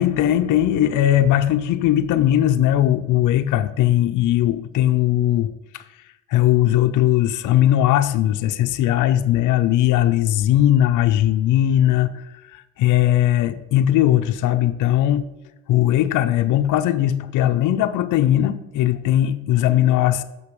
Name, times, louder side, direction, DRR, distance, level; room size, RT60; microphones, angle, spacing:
voice 1, 0.0-5.8 6.3-15.3 15.7-20.2, left 12 dB, 80° left, 9 dB, 0.5 m, -19 dB
6.7 x 5.2 x 5.3 m, 0.97 s
cardioid pair, 90°, 30 cm